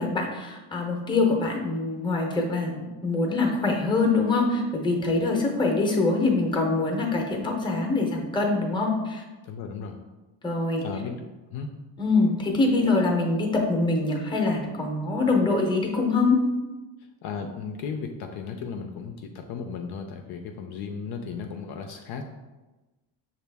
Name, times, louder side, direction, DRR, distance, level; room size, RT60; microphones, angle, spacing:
voice 1, 0.0-9.2 10.4-10.8 12.0-16.4, left 3 dB, 10° left, 1 dB, 0.7 m, -24 dB
voice 2, 9.4-10.0 10.8-11.2 11.5-11.7 17.2-22.2, left 5 dB, 60° left, 4 dB, 0.5 m, -35 dB
5.8 x 2.5 x 3.4 m, 1.1 s
cardioid pair, 120°, 45 cm